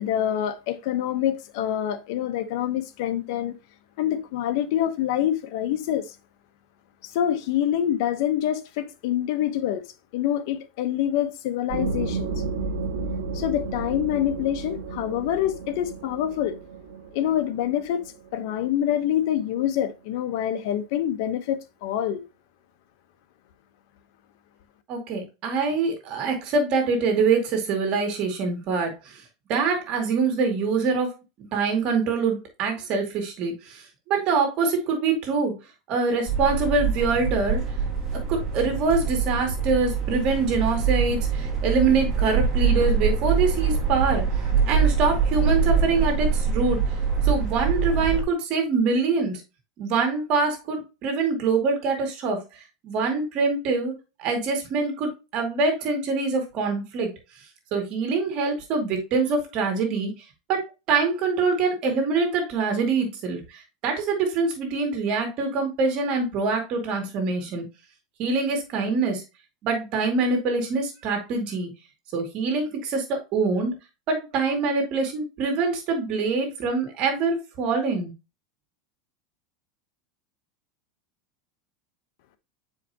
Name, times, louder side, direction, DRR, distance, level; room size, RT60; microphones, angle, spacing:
voice 1, 0.0-3.5 4.0-6.1 7.0-9.8 10.1-12.4 13.3-16.6 17.1-18.0 18.3-22.2, left 11 dB, 65° left, 0.9 m, -26 dB
sound 1, 11.7-19.1, right 4 dB, 85° right, 1.0 m, -33 dB
voice 2, 24.9-29.2 29.5-31.1 31.5-35.5 35.9-37.6 38.3-44.2 44.7-46.8 47.2-49.4 49.8-53.9 54.2-57.1 57.7-60.1 60.5-67.6 68.2-69.2 69.6-71.7 72.1-73.7 74.1-78.1, right 4 dB, 45° right, 2.4 m, -24 dB
sound 2, 36.3-48.2, right 6 dB, 20° right, 2.3 m, -24 dB
7.6 x 4.9 x 2.8 m
supercardioid pair, 145°, 2 cm